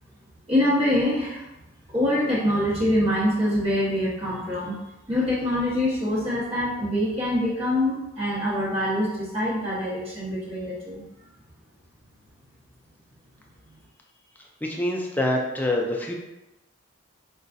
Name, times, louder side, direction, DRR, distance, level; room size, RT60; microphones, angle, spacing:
voice 1, 0.5-1.5 1.9-4.7 5.1-11.0, left 1 dB, 30° right, -9 dB, 1.0 m, -24 dB
voice 2, 14.6-16.1, left 1 dB, 10° left, 0 dB, 0.4 m, -25 dB
5.2 x 2.3 x 2.6 m, 0.96 s
head